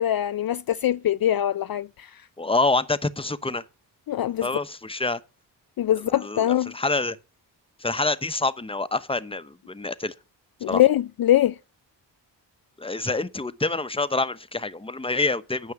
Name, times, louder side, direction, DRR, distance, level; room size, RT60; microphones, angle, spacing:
voice 1, 0.0-2.2 4.1-4.5 5.8-6.7 10.6-11.6, left 12 dB, 55° left, 0.5 m, -23 dB
voice 2, 2.4-3.6 4.4-5.2 6.1-7.2 7.8-10.1 10.7-10.8 12.8-15.7, left 3 dB, 10° left, 0.9 m, -26 dB
9.7 x 6.3 x 7.1 m
cardioid pair, 45°, 44 cm